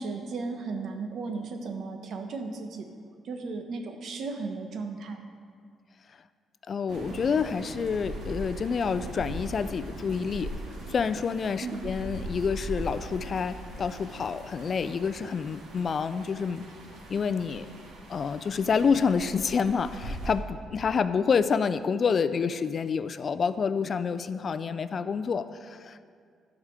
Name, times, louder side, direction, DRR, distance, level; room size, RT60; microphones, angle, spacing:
voice 1, 0.0-2.9 3.2-5.2 11.6-11.9, right 4 dB, 65° right, 5 dB, 1.1 m, -35 dB
voice 2, 6.7-10.5 10.9-16.6 17.1-17.7 18.1-26.1, left 6 dB, 45° left, 12 dB, 0.4 m, -28 dB
sound 1, 6.9-20.4, right 1 dB, 80° right, 1.9 m, -40 dB
11.5 x 5.0 x 6.7 m, 2.2 s
cardioid pair, 110°, 0 cm